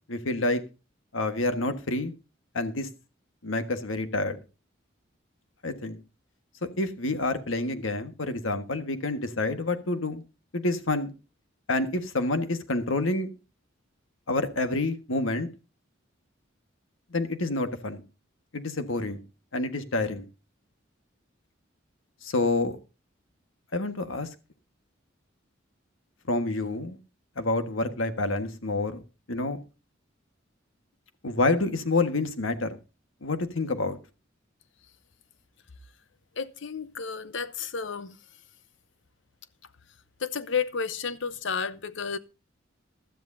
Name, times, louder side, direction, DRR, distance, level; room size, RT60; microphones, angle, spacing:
voice 1, 0.1-0.6 1.1-2.1 2.5-2.9 3.4-4.4 5.6-6.0 6.8-10.2 10.5-11.1 11.7-13.3 14.3-15.5 17.1-18.0 18.5-19.2 19.5-20.2 22.2-22.8 23.7-24.3 26.3-27.0 27.4-29.0 29.3-29.6 31.2-32.8 33.2-34.0, left 2 dB, 85° left, 1.6 m, -28 dB
voice 2, 36.3-38.2 40.2-42.2, left 6 dB, 65° left, 0.9 m, -31 dB
16.0 x 12.5 x 2.7 m
head